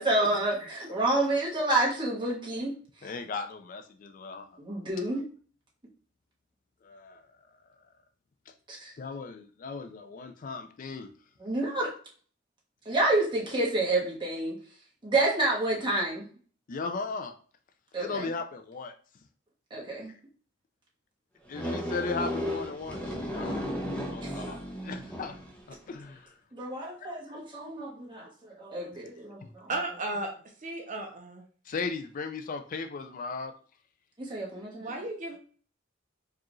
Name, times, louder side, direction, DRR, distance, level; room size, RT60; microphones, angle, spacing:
voice 1, 0.0-2.7 3.0-3.1 4.6-5.2 8.7-8.9 11.4-11.9 12.8-14.6 15.0-16.3 17.9-18.3 19.7-20.1 24.2-24.6 26.5-29.7 34.2-35.0, right 2 dB, 25° right, -3 dB, 1.2 m, -29 dB
voice 2, 3.0-4.6 6.8-7.2 9.0-11.1 16.7-17.3 18.0-18.9 19.9-20.2 21.5-23.7 24.1-25.4 25.7-26.3 27.0-27.4 31.7-33.5, left 4 dB, 45° left, 7 dB, 0.4 m, -37 dB
sound 1, 21.5-25.6, equal, 5° left, 0.7 m, -34 dB
voice 3, 29.7-30.3 30.6-31.4 34.8-35.4, right 2 dB, 40° right, 2 dB, 0.6 m, -34 dB
4.6 x 2.4 x 3.0 m, 0.43 s
head